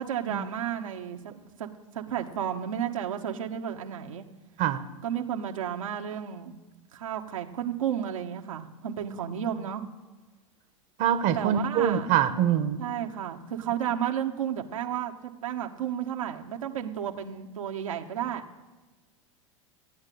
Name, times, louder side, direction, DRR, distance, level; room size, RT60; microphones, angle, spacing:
voice 1, 0.0-1.3 1.6-1.7 1.9-4.2 5.0-6.5 6.9-9.8 11.3-12.1 12.8-18.4, right 9 dB, 85° right, 2 dB, 1.2 m, -32 dB
voice 2, 11.0-12.8, right 9 dB, 50° right, 7 dB, 1.0 m, -24 dB
14.5 x 8.9 x 6.8 m, 1.3 s
hypercardioid pair, 100°, 17 cm